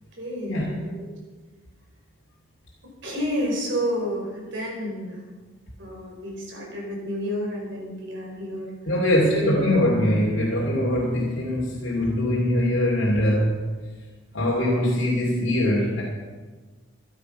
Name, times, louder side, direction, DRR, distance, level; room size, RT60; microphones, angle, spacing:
voice 1, 0.1-1.1 3.0-5.2 5.8-8.7, equal, 65° right, -2 dB, 4.7 m, -30 dB
voice 2, 8.9-13.6 14.3-16.0, left 1 dB, 70° left, -4 dB, 2.7 m, -22 dB
13.5 x 12.0 x 5.6 m, 1.4 s
head